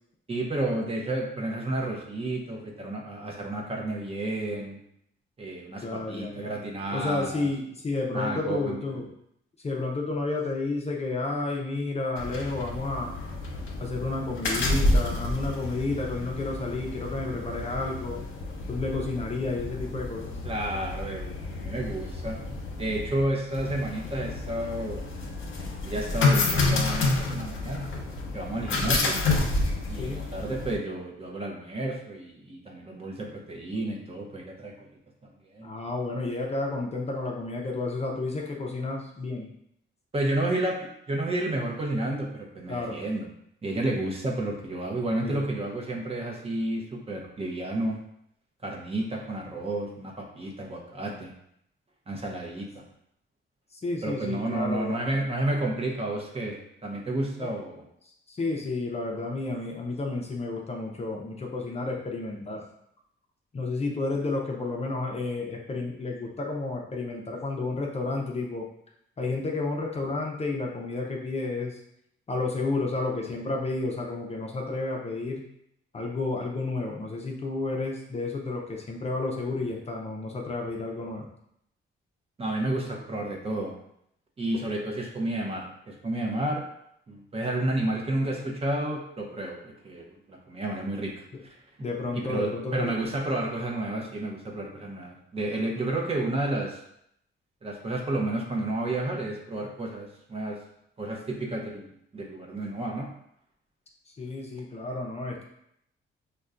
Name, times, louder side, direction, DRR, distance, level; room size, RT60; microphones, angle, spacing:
voice 1, 0.3-4.8 5.4-7.5 8.1-9.0 20.4-22.4 22.8-25.0 25.8-27.9 28.3-29.2 29.9-34.7 35.5-35.7 40.1-40.8 41.1-43.3 43.6-48.0 48.6-51.3 52.1-52.8 54.0-57.8 82.4-83.7 84.4-86.6 87.1-91.6 92.1-96.8 97.6-100.6 101.0-101.9 102.1-103.1, right 1 dB, 30° right, -1 dB, 0.7 m, -31 dB
voice 2, 5.8-6.6 6.9-9.1 9.6-13.2 13.8-18.2 18.7-20.3 28.9-29.1 30.0-30.2 35.6-39.5 42.7-43.0 45.2-45.4 53.7-55.2 57.4-57.5 58.0-62.6 63.5-68.7 69.2-71.8 72.3-75.5 75.9-81.3 91.8-92.9 104.2-105.4, left 3 dB, 30° left, 0 dB, 0.5 m, -31 dB
sound 1, 12.2-30.7, left 2 dB, 70° left, 0.8 m, -29 dB
5.3 x 2.2 x 2.4 m, 0.74 s
cardioid pair, 120°, 21 cm